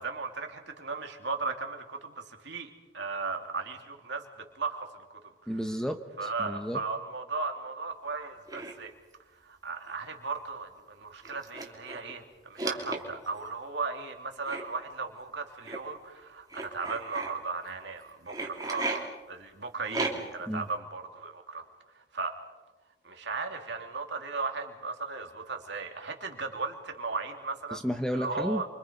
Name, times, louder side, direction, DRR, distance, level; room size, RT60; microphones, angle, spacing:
voice 1, 0.0-4.3 4.5-5.2 6.2-8.9 9.4-21.6 22.1-22.4 23.0-27.8 28.1-28.7, right 4 dB, 60° right, 3 dB, 3.1 m, -36 dB
voice 2, 5.5-6.8 20.5-20.7 27.7-28.6, equal, 5° left, 6 dB, 1.0 m, -32 dB
sound 1, 8.5-8.7 9.9-10.0 10.3-10.4 11.2-12.1 12.6-13.4 14.4-14.6 15.6-15.8 16.5-17.3 18.3-19.0 19.9-20.4, right 2 dB, 20° right, 2.9 m, -34 dB
29.0 x 25.5 x 5.4 m, 1.1 s
head